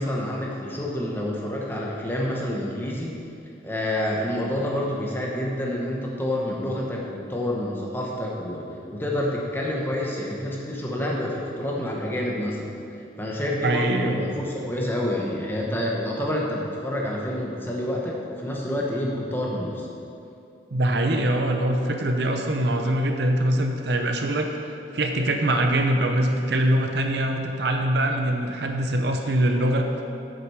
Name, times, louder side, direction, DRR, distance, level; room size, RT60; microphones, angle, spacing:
voice 1, 0.0-3.2 3.6-12.7 13.2-19.9, left 1 dB, 10° left, -2 dB, 1.0 m, -28 dB
voice 2, 13.6-14.2 20.7-29.9, right 1 dB, 60° right, 3 dB, 0.7 m, -23 dB
8.5 x 7.6 x 4.9 m, 2.7 s
head